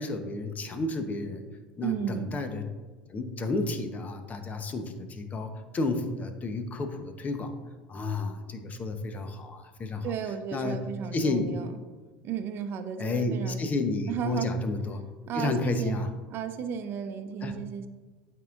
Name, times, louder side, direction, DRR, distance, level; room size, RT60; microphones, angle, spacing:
voice 1, 0.0-1.4 1.8-2.7 3.1-7.5 7.9-10.1 10.5-11.5 13.0-15.0 15.3-16.1 17.4-17.5, left 2 dB, 30° left, 7 dB, 1.0 m, -31 dB
voice 2, 1.8-2.4 10.0-11.7 12.2-13.7 14.1-14.5 15.3-16.0 16.3-17.9, right 7 dB, 45° right, 8 dB, 0.7 m, -34 dB
12.0 x 4.7 x 2.5 m, 1.3 s
hypercardioid pair, 75°, 5 cm